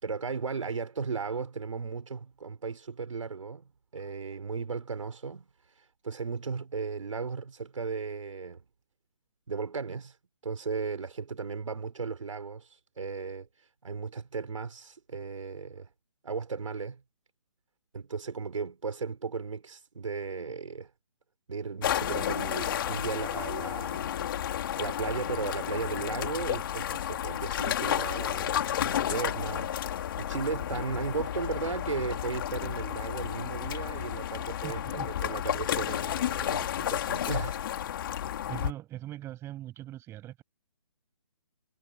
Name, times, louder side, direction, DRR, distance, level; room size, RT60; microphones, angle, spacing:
voice 1, 0.0-5.5 6.0-8.6 9.5-10.2 10.4-12.7 13.0-13.5 13.8-15.9 16.2-17.0 17.9-20.9 21.5-24.1 24.8-29.7 30.2-34.8 35.2-37.6, right 5 dB, 75° right, 5.5 m, -35 dB
sound 1, 21.8-38.7, left 11 dB, 40° left, 2.8 m, -32 dB
voice 2, 34.6-35.1 38.2-40.4, right 14 dB, 15° right, 7.8 m, -41 dB
hypercardioid pair, 155°, 17 cm